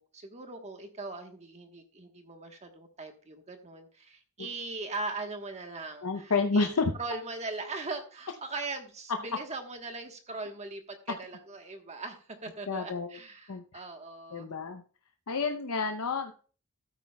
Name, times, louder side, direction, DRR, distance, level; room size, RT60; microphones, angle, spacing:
voice 1, 0.0-6.7 7.0-14.5, right 3 dB, 30° right, 5 dB, 1.3 m, -40 dB
voice 2, 6.0-6.9 11.1-11.2 12.7-13.2 13.5-13.6 14.3-14.8 15.3-16.3, left 4 dB, 90° left, 5 dB, 0.7 m, -29 dB
13.5 x 8.5 x 2.3 m, 0.39 s
head